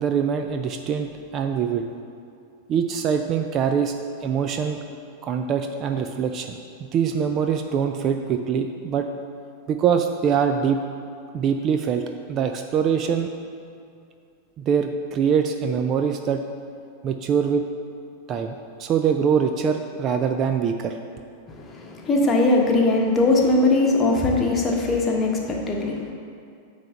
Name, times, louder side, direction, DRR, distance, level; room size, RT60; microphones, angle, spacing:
voice 1, 0.0-1.9 2.7-3.9 4.2-4.8 5.2-9.1 9.7-10.8 11.3-12.0 12.3-13.3 14.6-16.4 17.0-17.6 18.3-21.0, right 7 dB, 30° right, 6 dB, 0.4 m, -23 dB
voice 2, 21.5-26.1, left 2 dB, 20° left, -1 dB, 1.1 m, -20 dB
9.0 x 3.4 x 5.6 m, 2.4 s
figure-of-eight pair, 90°, 0 cm